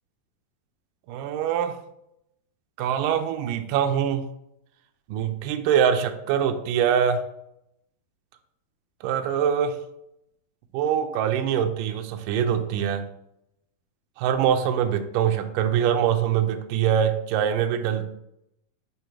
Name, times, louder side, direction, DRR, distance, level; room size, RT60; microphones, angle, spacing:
voice 1, 1.1-1.8 2.8-4.2 5.1-7.2 9.0-9.8 10.7-13.0 14.2-18.1, right 8 dB, 85° right, 6 dB, 1.9 m, -23 dB
8.9 x 5.3 x 3.0 m, 0.80 s
omnidirectional pair, 4.4 m